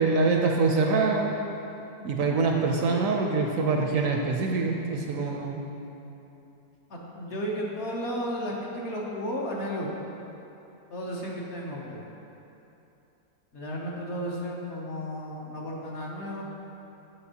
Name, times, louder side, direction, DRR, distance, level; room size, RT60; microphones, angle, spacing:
voice 1, 0.0-1.3 2.0-5.6, right 4 dB, 70° right, 1 dB, 0.9 m, -24 dB
voice 2, 6.9-9.9 10.9-12.0 13.5-16.4, equal, 55° left, -3 dB, 1.0 m, -33 dB
8.7 x 6.2 x 2.8 m, 2.9 s
omnidirectional pair, 1.6 m